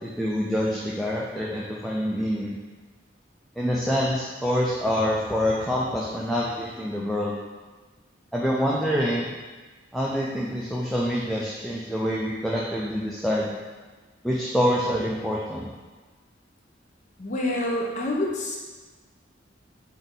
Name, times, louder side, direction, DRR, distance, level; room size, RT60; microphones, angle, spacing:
voice 1, 0.0-2.6 3.6-7.4 8.3-9.3 9.9-13.5 14.2-15.7, equal, ahead, -5 dB, 0.3 m, -26 dB
voice 2, 17.2-18.6, left 1 dB, 40° left, -2 dB, 0.6 m, -27 dB
3.8 x 2.7 x 3.6 m, 1.3 s
head